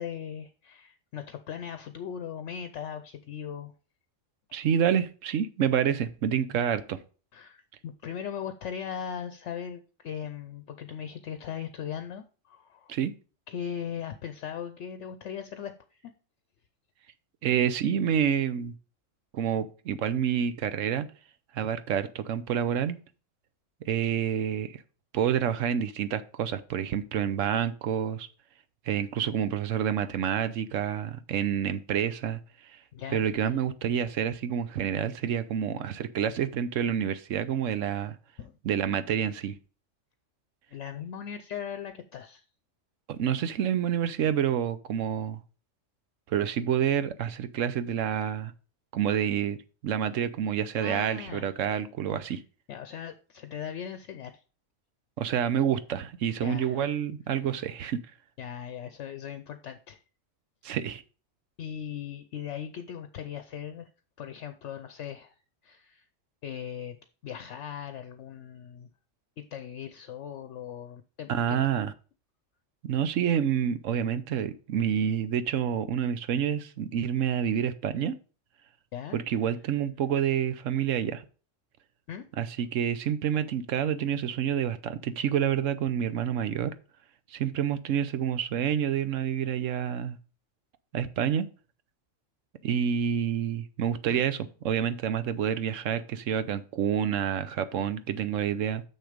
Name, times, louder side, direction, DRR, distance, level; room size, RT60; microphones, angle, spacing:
voice 1, 0.0-3.7 7.3-12.9 13.5-16.1 32.9-33.5 38.4-38.6 40.7-42.4 50.8-51.5 52.2-52.4 52.7-54.4 56.4-56.9 58.4-60.0 61.6-63.9 64.2-65.3 65.6-66.1 66.4-67.0 67.2-68.9 69.4-71.6 78.9-79.2 82.1-82.2 94.1-94.2, left 8 dB, 70° left, 0.9 m, -39 dB
voice 2, 4.5-7.0 12.9-13.1 17.4-18.7 19.3-21.1 21.5-23.0 23.8-24.8 25.1-28.3 28.9-32.4 32.7-32.8 33.1-38.2 38.6-39.6 43.1-45.4 46.3-48.5 48.9-49.6 49.8-52.4 55.2-58.0 60.6-61.0 71.3-71.9 72.8-78.2 79.1-81.2 82.4-86.7 87.3-90.2 90.9-91.5 92.6-98.8, right 9 dB, 75° right, 1.1 m, -28 dB
6.6 x 6.5 x 5.0 m
omnidirectional pair, 1.3 m